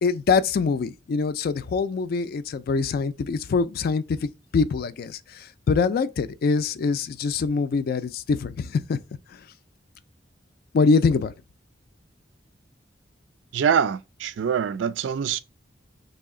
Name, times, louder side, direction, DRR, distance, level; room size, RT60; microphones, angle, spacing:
voice 1, 0.0-9.0 9.3-9.5 10.7-11.3, left 4 dB, 55° left, 0.3 m, -24 dB
voice 2, 13.5-15.4, right 7 dB, 85° right, 0.3 m, -24 dB
3.2 x 2.7 x 3.6 m
head